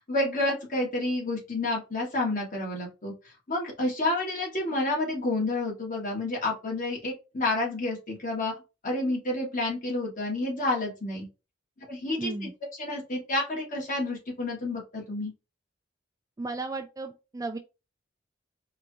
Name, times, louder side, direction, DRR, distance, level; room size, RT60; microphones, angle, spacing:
voice 1, 0.1-3.1 3.5-8.6 8.8-11.3 11.9-12.5 12.8-15.3, left 2 dB, 45° left, -2 dB, 1.7 m, -29 dB
voice 2, 12.2-12.5 16.4-17.6, right 3 dB, 20° right, 6 dB, 0.3 m, -34 dB
4.7 x 2.5 x 2.8 m, 0.29 s
head